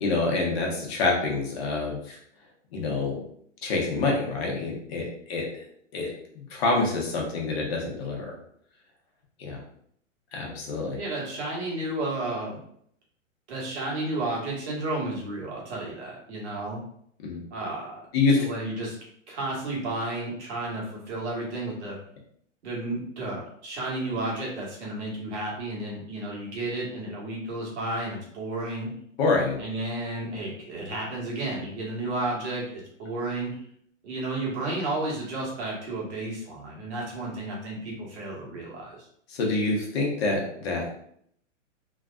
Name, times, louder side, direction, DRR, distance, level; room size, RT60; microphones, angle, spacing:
voice 1, 0.0-2.2 2.7-3.2 3.6-5.4 5.9-6.1 6.3-8.3 9.4-9.6 10.3-11.0 17.2-17.4 18.1-18.4 29.2-29.6 39.3-40.9, left 3 dB, 50° left, -1 dB, 1.1 m, -26 dB
voice 2, 11.0-12.6 13.5-16.8 17.5-18.0 18.4-18.9 19.3-22.0 22.6-28.9 29.6-33.5 34.0-39.0, right 2 dB, 60° right, -3 dB, 1.5 m, -32 dB
3.3 x 2.2 x 2.4 m, 0.67 s
hypercardioid pair, 135°, 39 cm